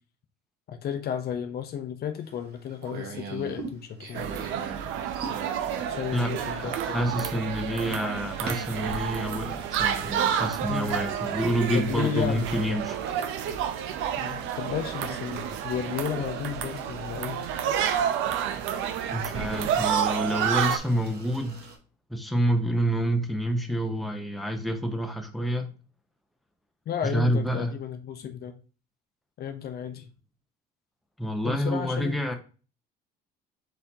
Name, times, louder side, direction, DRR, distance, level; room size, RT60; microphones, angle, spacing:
voice 1, 0.7-4.3 5.9-7.1 10.7-11.1 11.7-12.8 14.2-17.4 26.9-28.5 29.4-30.1 31.4-32.2, left 8 dB, 50° left, 0.6 m, -33 dB
sound 1, 2.2-21.8, right 4 dB, 55° right, 1.3 m, -45 dB
sound 2, 4.2-20.8, right 9 dB, 70° right, 0.6 m, -30 dB
voice 2, 6.1-13.0 19.1-21.6 22.1-25.7 27.0-27.7 31.2-32.3, equal, ahead, 0.8 m, -28 dB
4.2 x 4.1 x 2.8 m
supercardioid pair, 90°, 21 cm